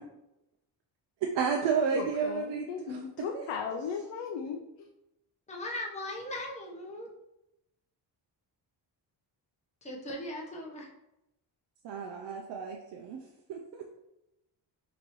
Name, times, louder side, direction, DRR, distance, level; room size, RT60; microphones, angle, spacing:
voice 1, 1.3-3.5 11.8-13.2 13.5-13.8, right 6 dB, 75° right, 1 dB, 0.6 m, -32 dB
voice 2, 1.9-4.9, left 6 dB, 90° left, 2 dB, 0.6 m, -37 dB
voice 3, 5.5-7.1 9.8-10.9, left 1 dB, 15° left, -2 dB, 0.8 m, -38 dB
5.2 x 2.9 x 3.0 m, 0.88 s
cardioid pair, 125°, 43 cm